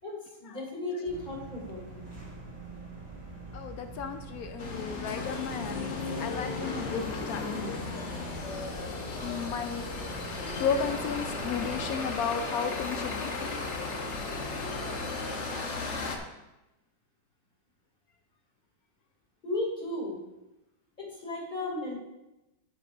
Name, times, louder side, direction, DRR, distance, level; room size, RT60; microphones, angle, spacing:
voice 1, 0.0-2.0 19.4-20.2 21.0-22.0, left 2 dB, 25° left, -3 dB, 2.8 m, -35 dB
sound 1, 1.0-11.9, right 3 dB, 15° right, 2.5 m, -45 dB
voice 2, 3.5-7.8 9.2-9.8 10.6-13.3, left 6 dB, 75° left, 8 dB, 0.8 m, -34 dB
sound 2, 4.6-16.2, left 3 dB, 45° left, 1.2 m, -35 dB
9.5 x 9.0 x 2.6 m, 0.98 s
omnidirectional pair, 2.0 m